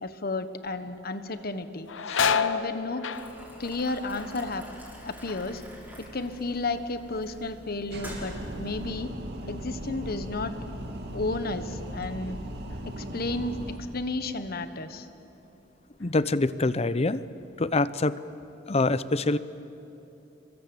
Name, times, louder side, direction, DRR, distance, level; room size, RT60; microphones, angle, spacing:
voice 1, 0.0-1.9 2.3-3.1 3.6-4.6 5.0-5.6 6.0-9.1 9.5-10.5 11.1-12.4 12.8-13.6 13.9-15.1, left 2 dB, 55° left, 10 dB, 1.4 m, -32 dB
sound 1, 0.7-1.0 1.4-7.0 7.3-7.9 8.4-11.3 11.6-11.7 12.7-12.9 13.3-14.5 14.9-15.1 15.7-16.3 16.6-17.8, left 6 dB, 85° left, 0.9 m, -34 dB
Boiling, 3.1-8.9, equal, 10° right, 6.2 m, -45 dB
sound 2, 7.9-13.8, equal, 60° right, 2.2 m, -38 dB
voice 2, 16.0-17.2 17.6-18.2 18.7-19.4, left 2 dB, 35° left, 15 dB, 0.7 m, -25 dB
29.0 x 23.0 x 8.0 m, 2.9 s
head